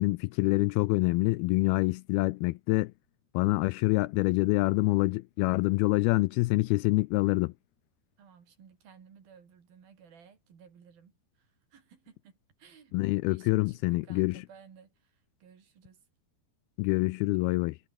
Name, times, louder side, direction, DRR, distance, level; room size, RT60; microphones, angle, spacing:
voice 1, 0.0-2.9 3.3-7.5 12.9-14.4 16.8-17.8, left 22 dB, 80° left, 2.3 m, -26 dB
voice 2, 8.2-16.0, right 7 dB, 60° right, 5.3 m, -57 dB
omnidirectional pair, 4.7 m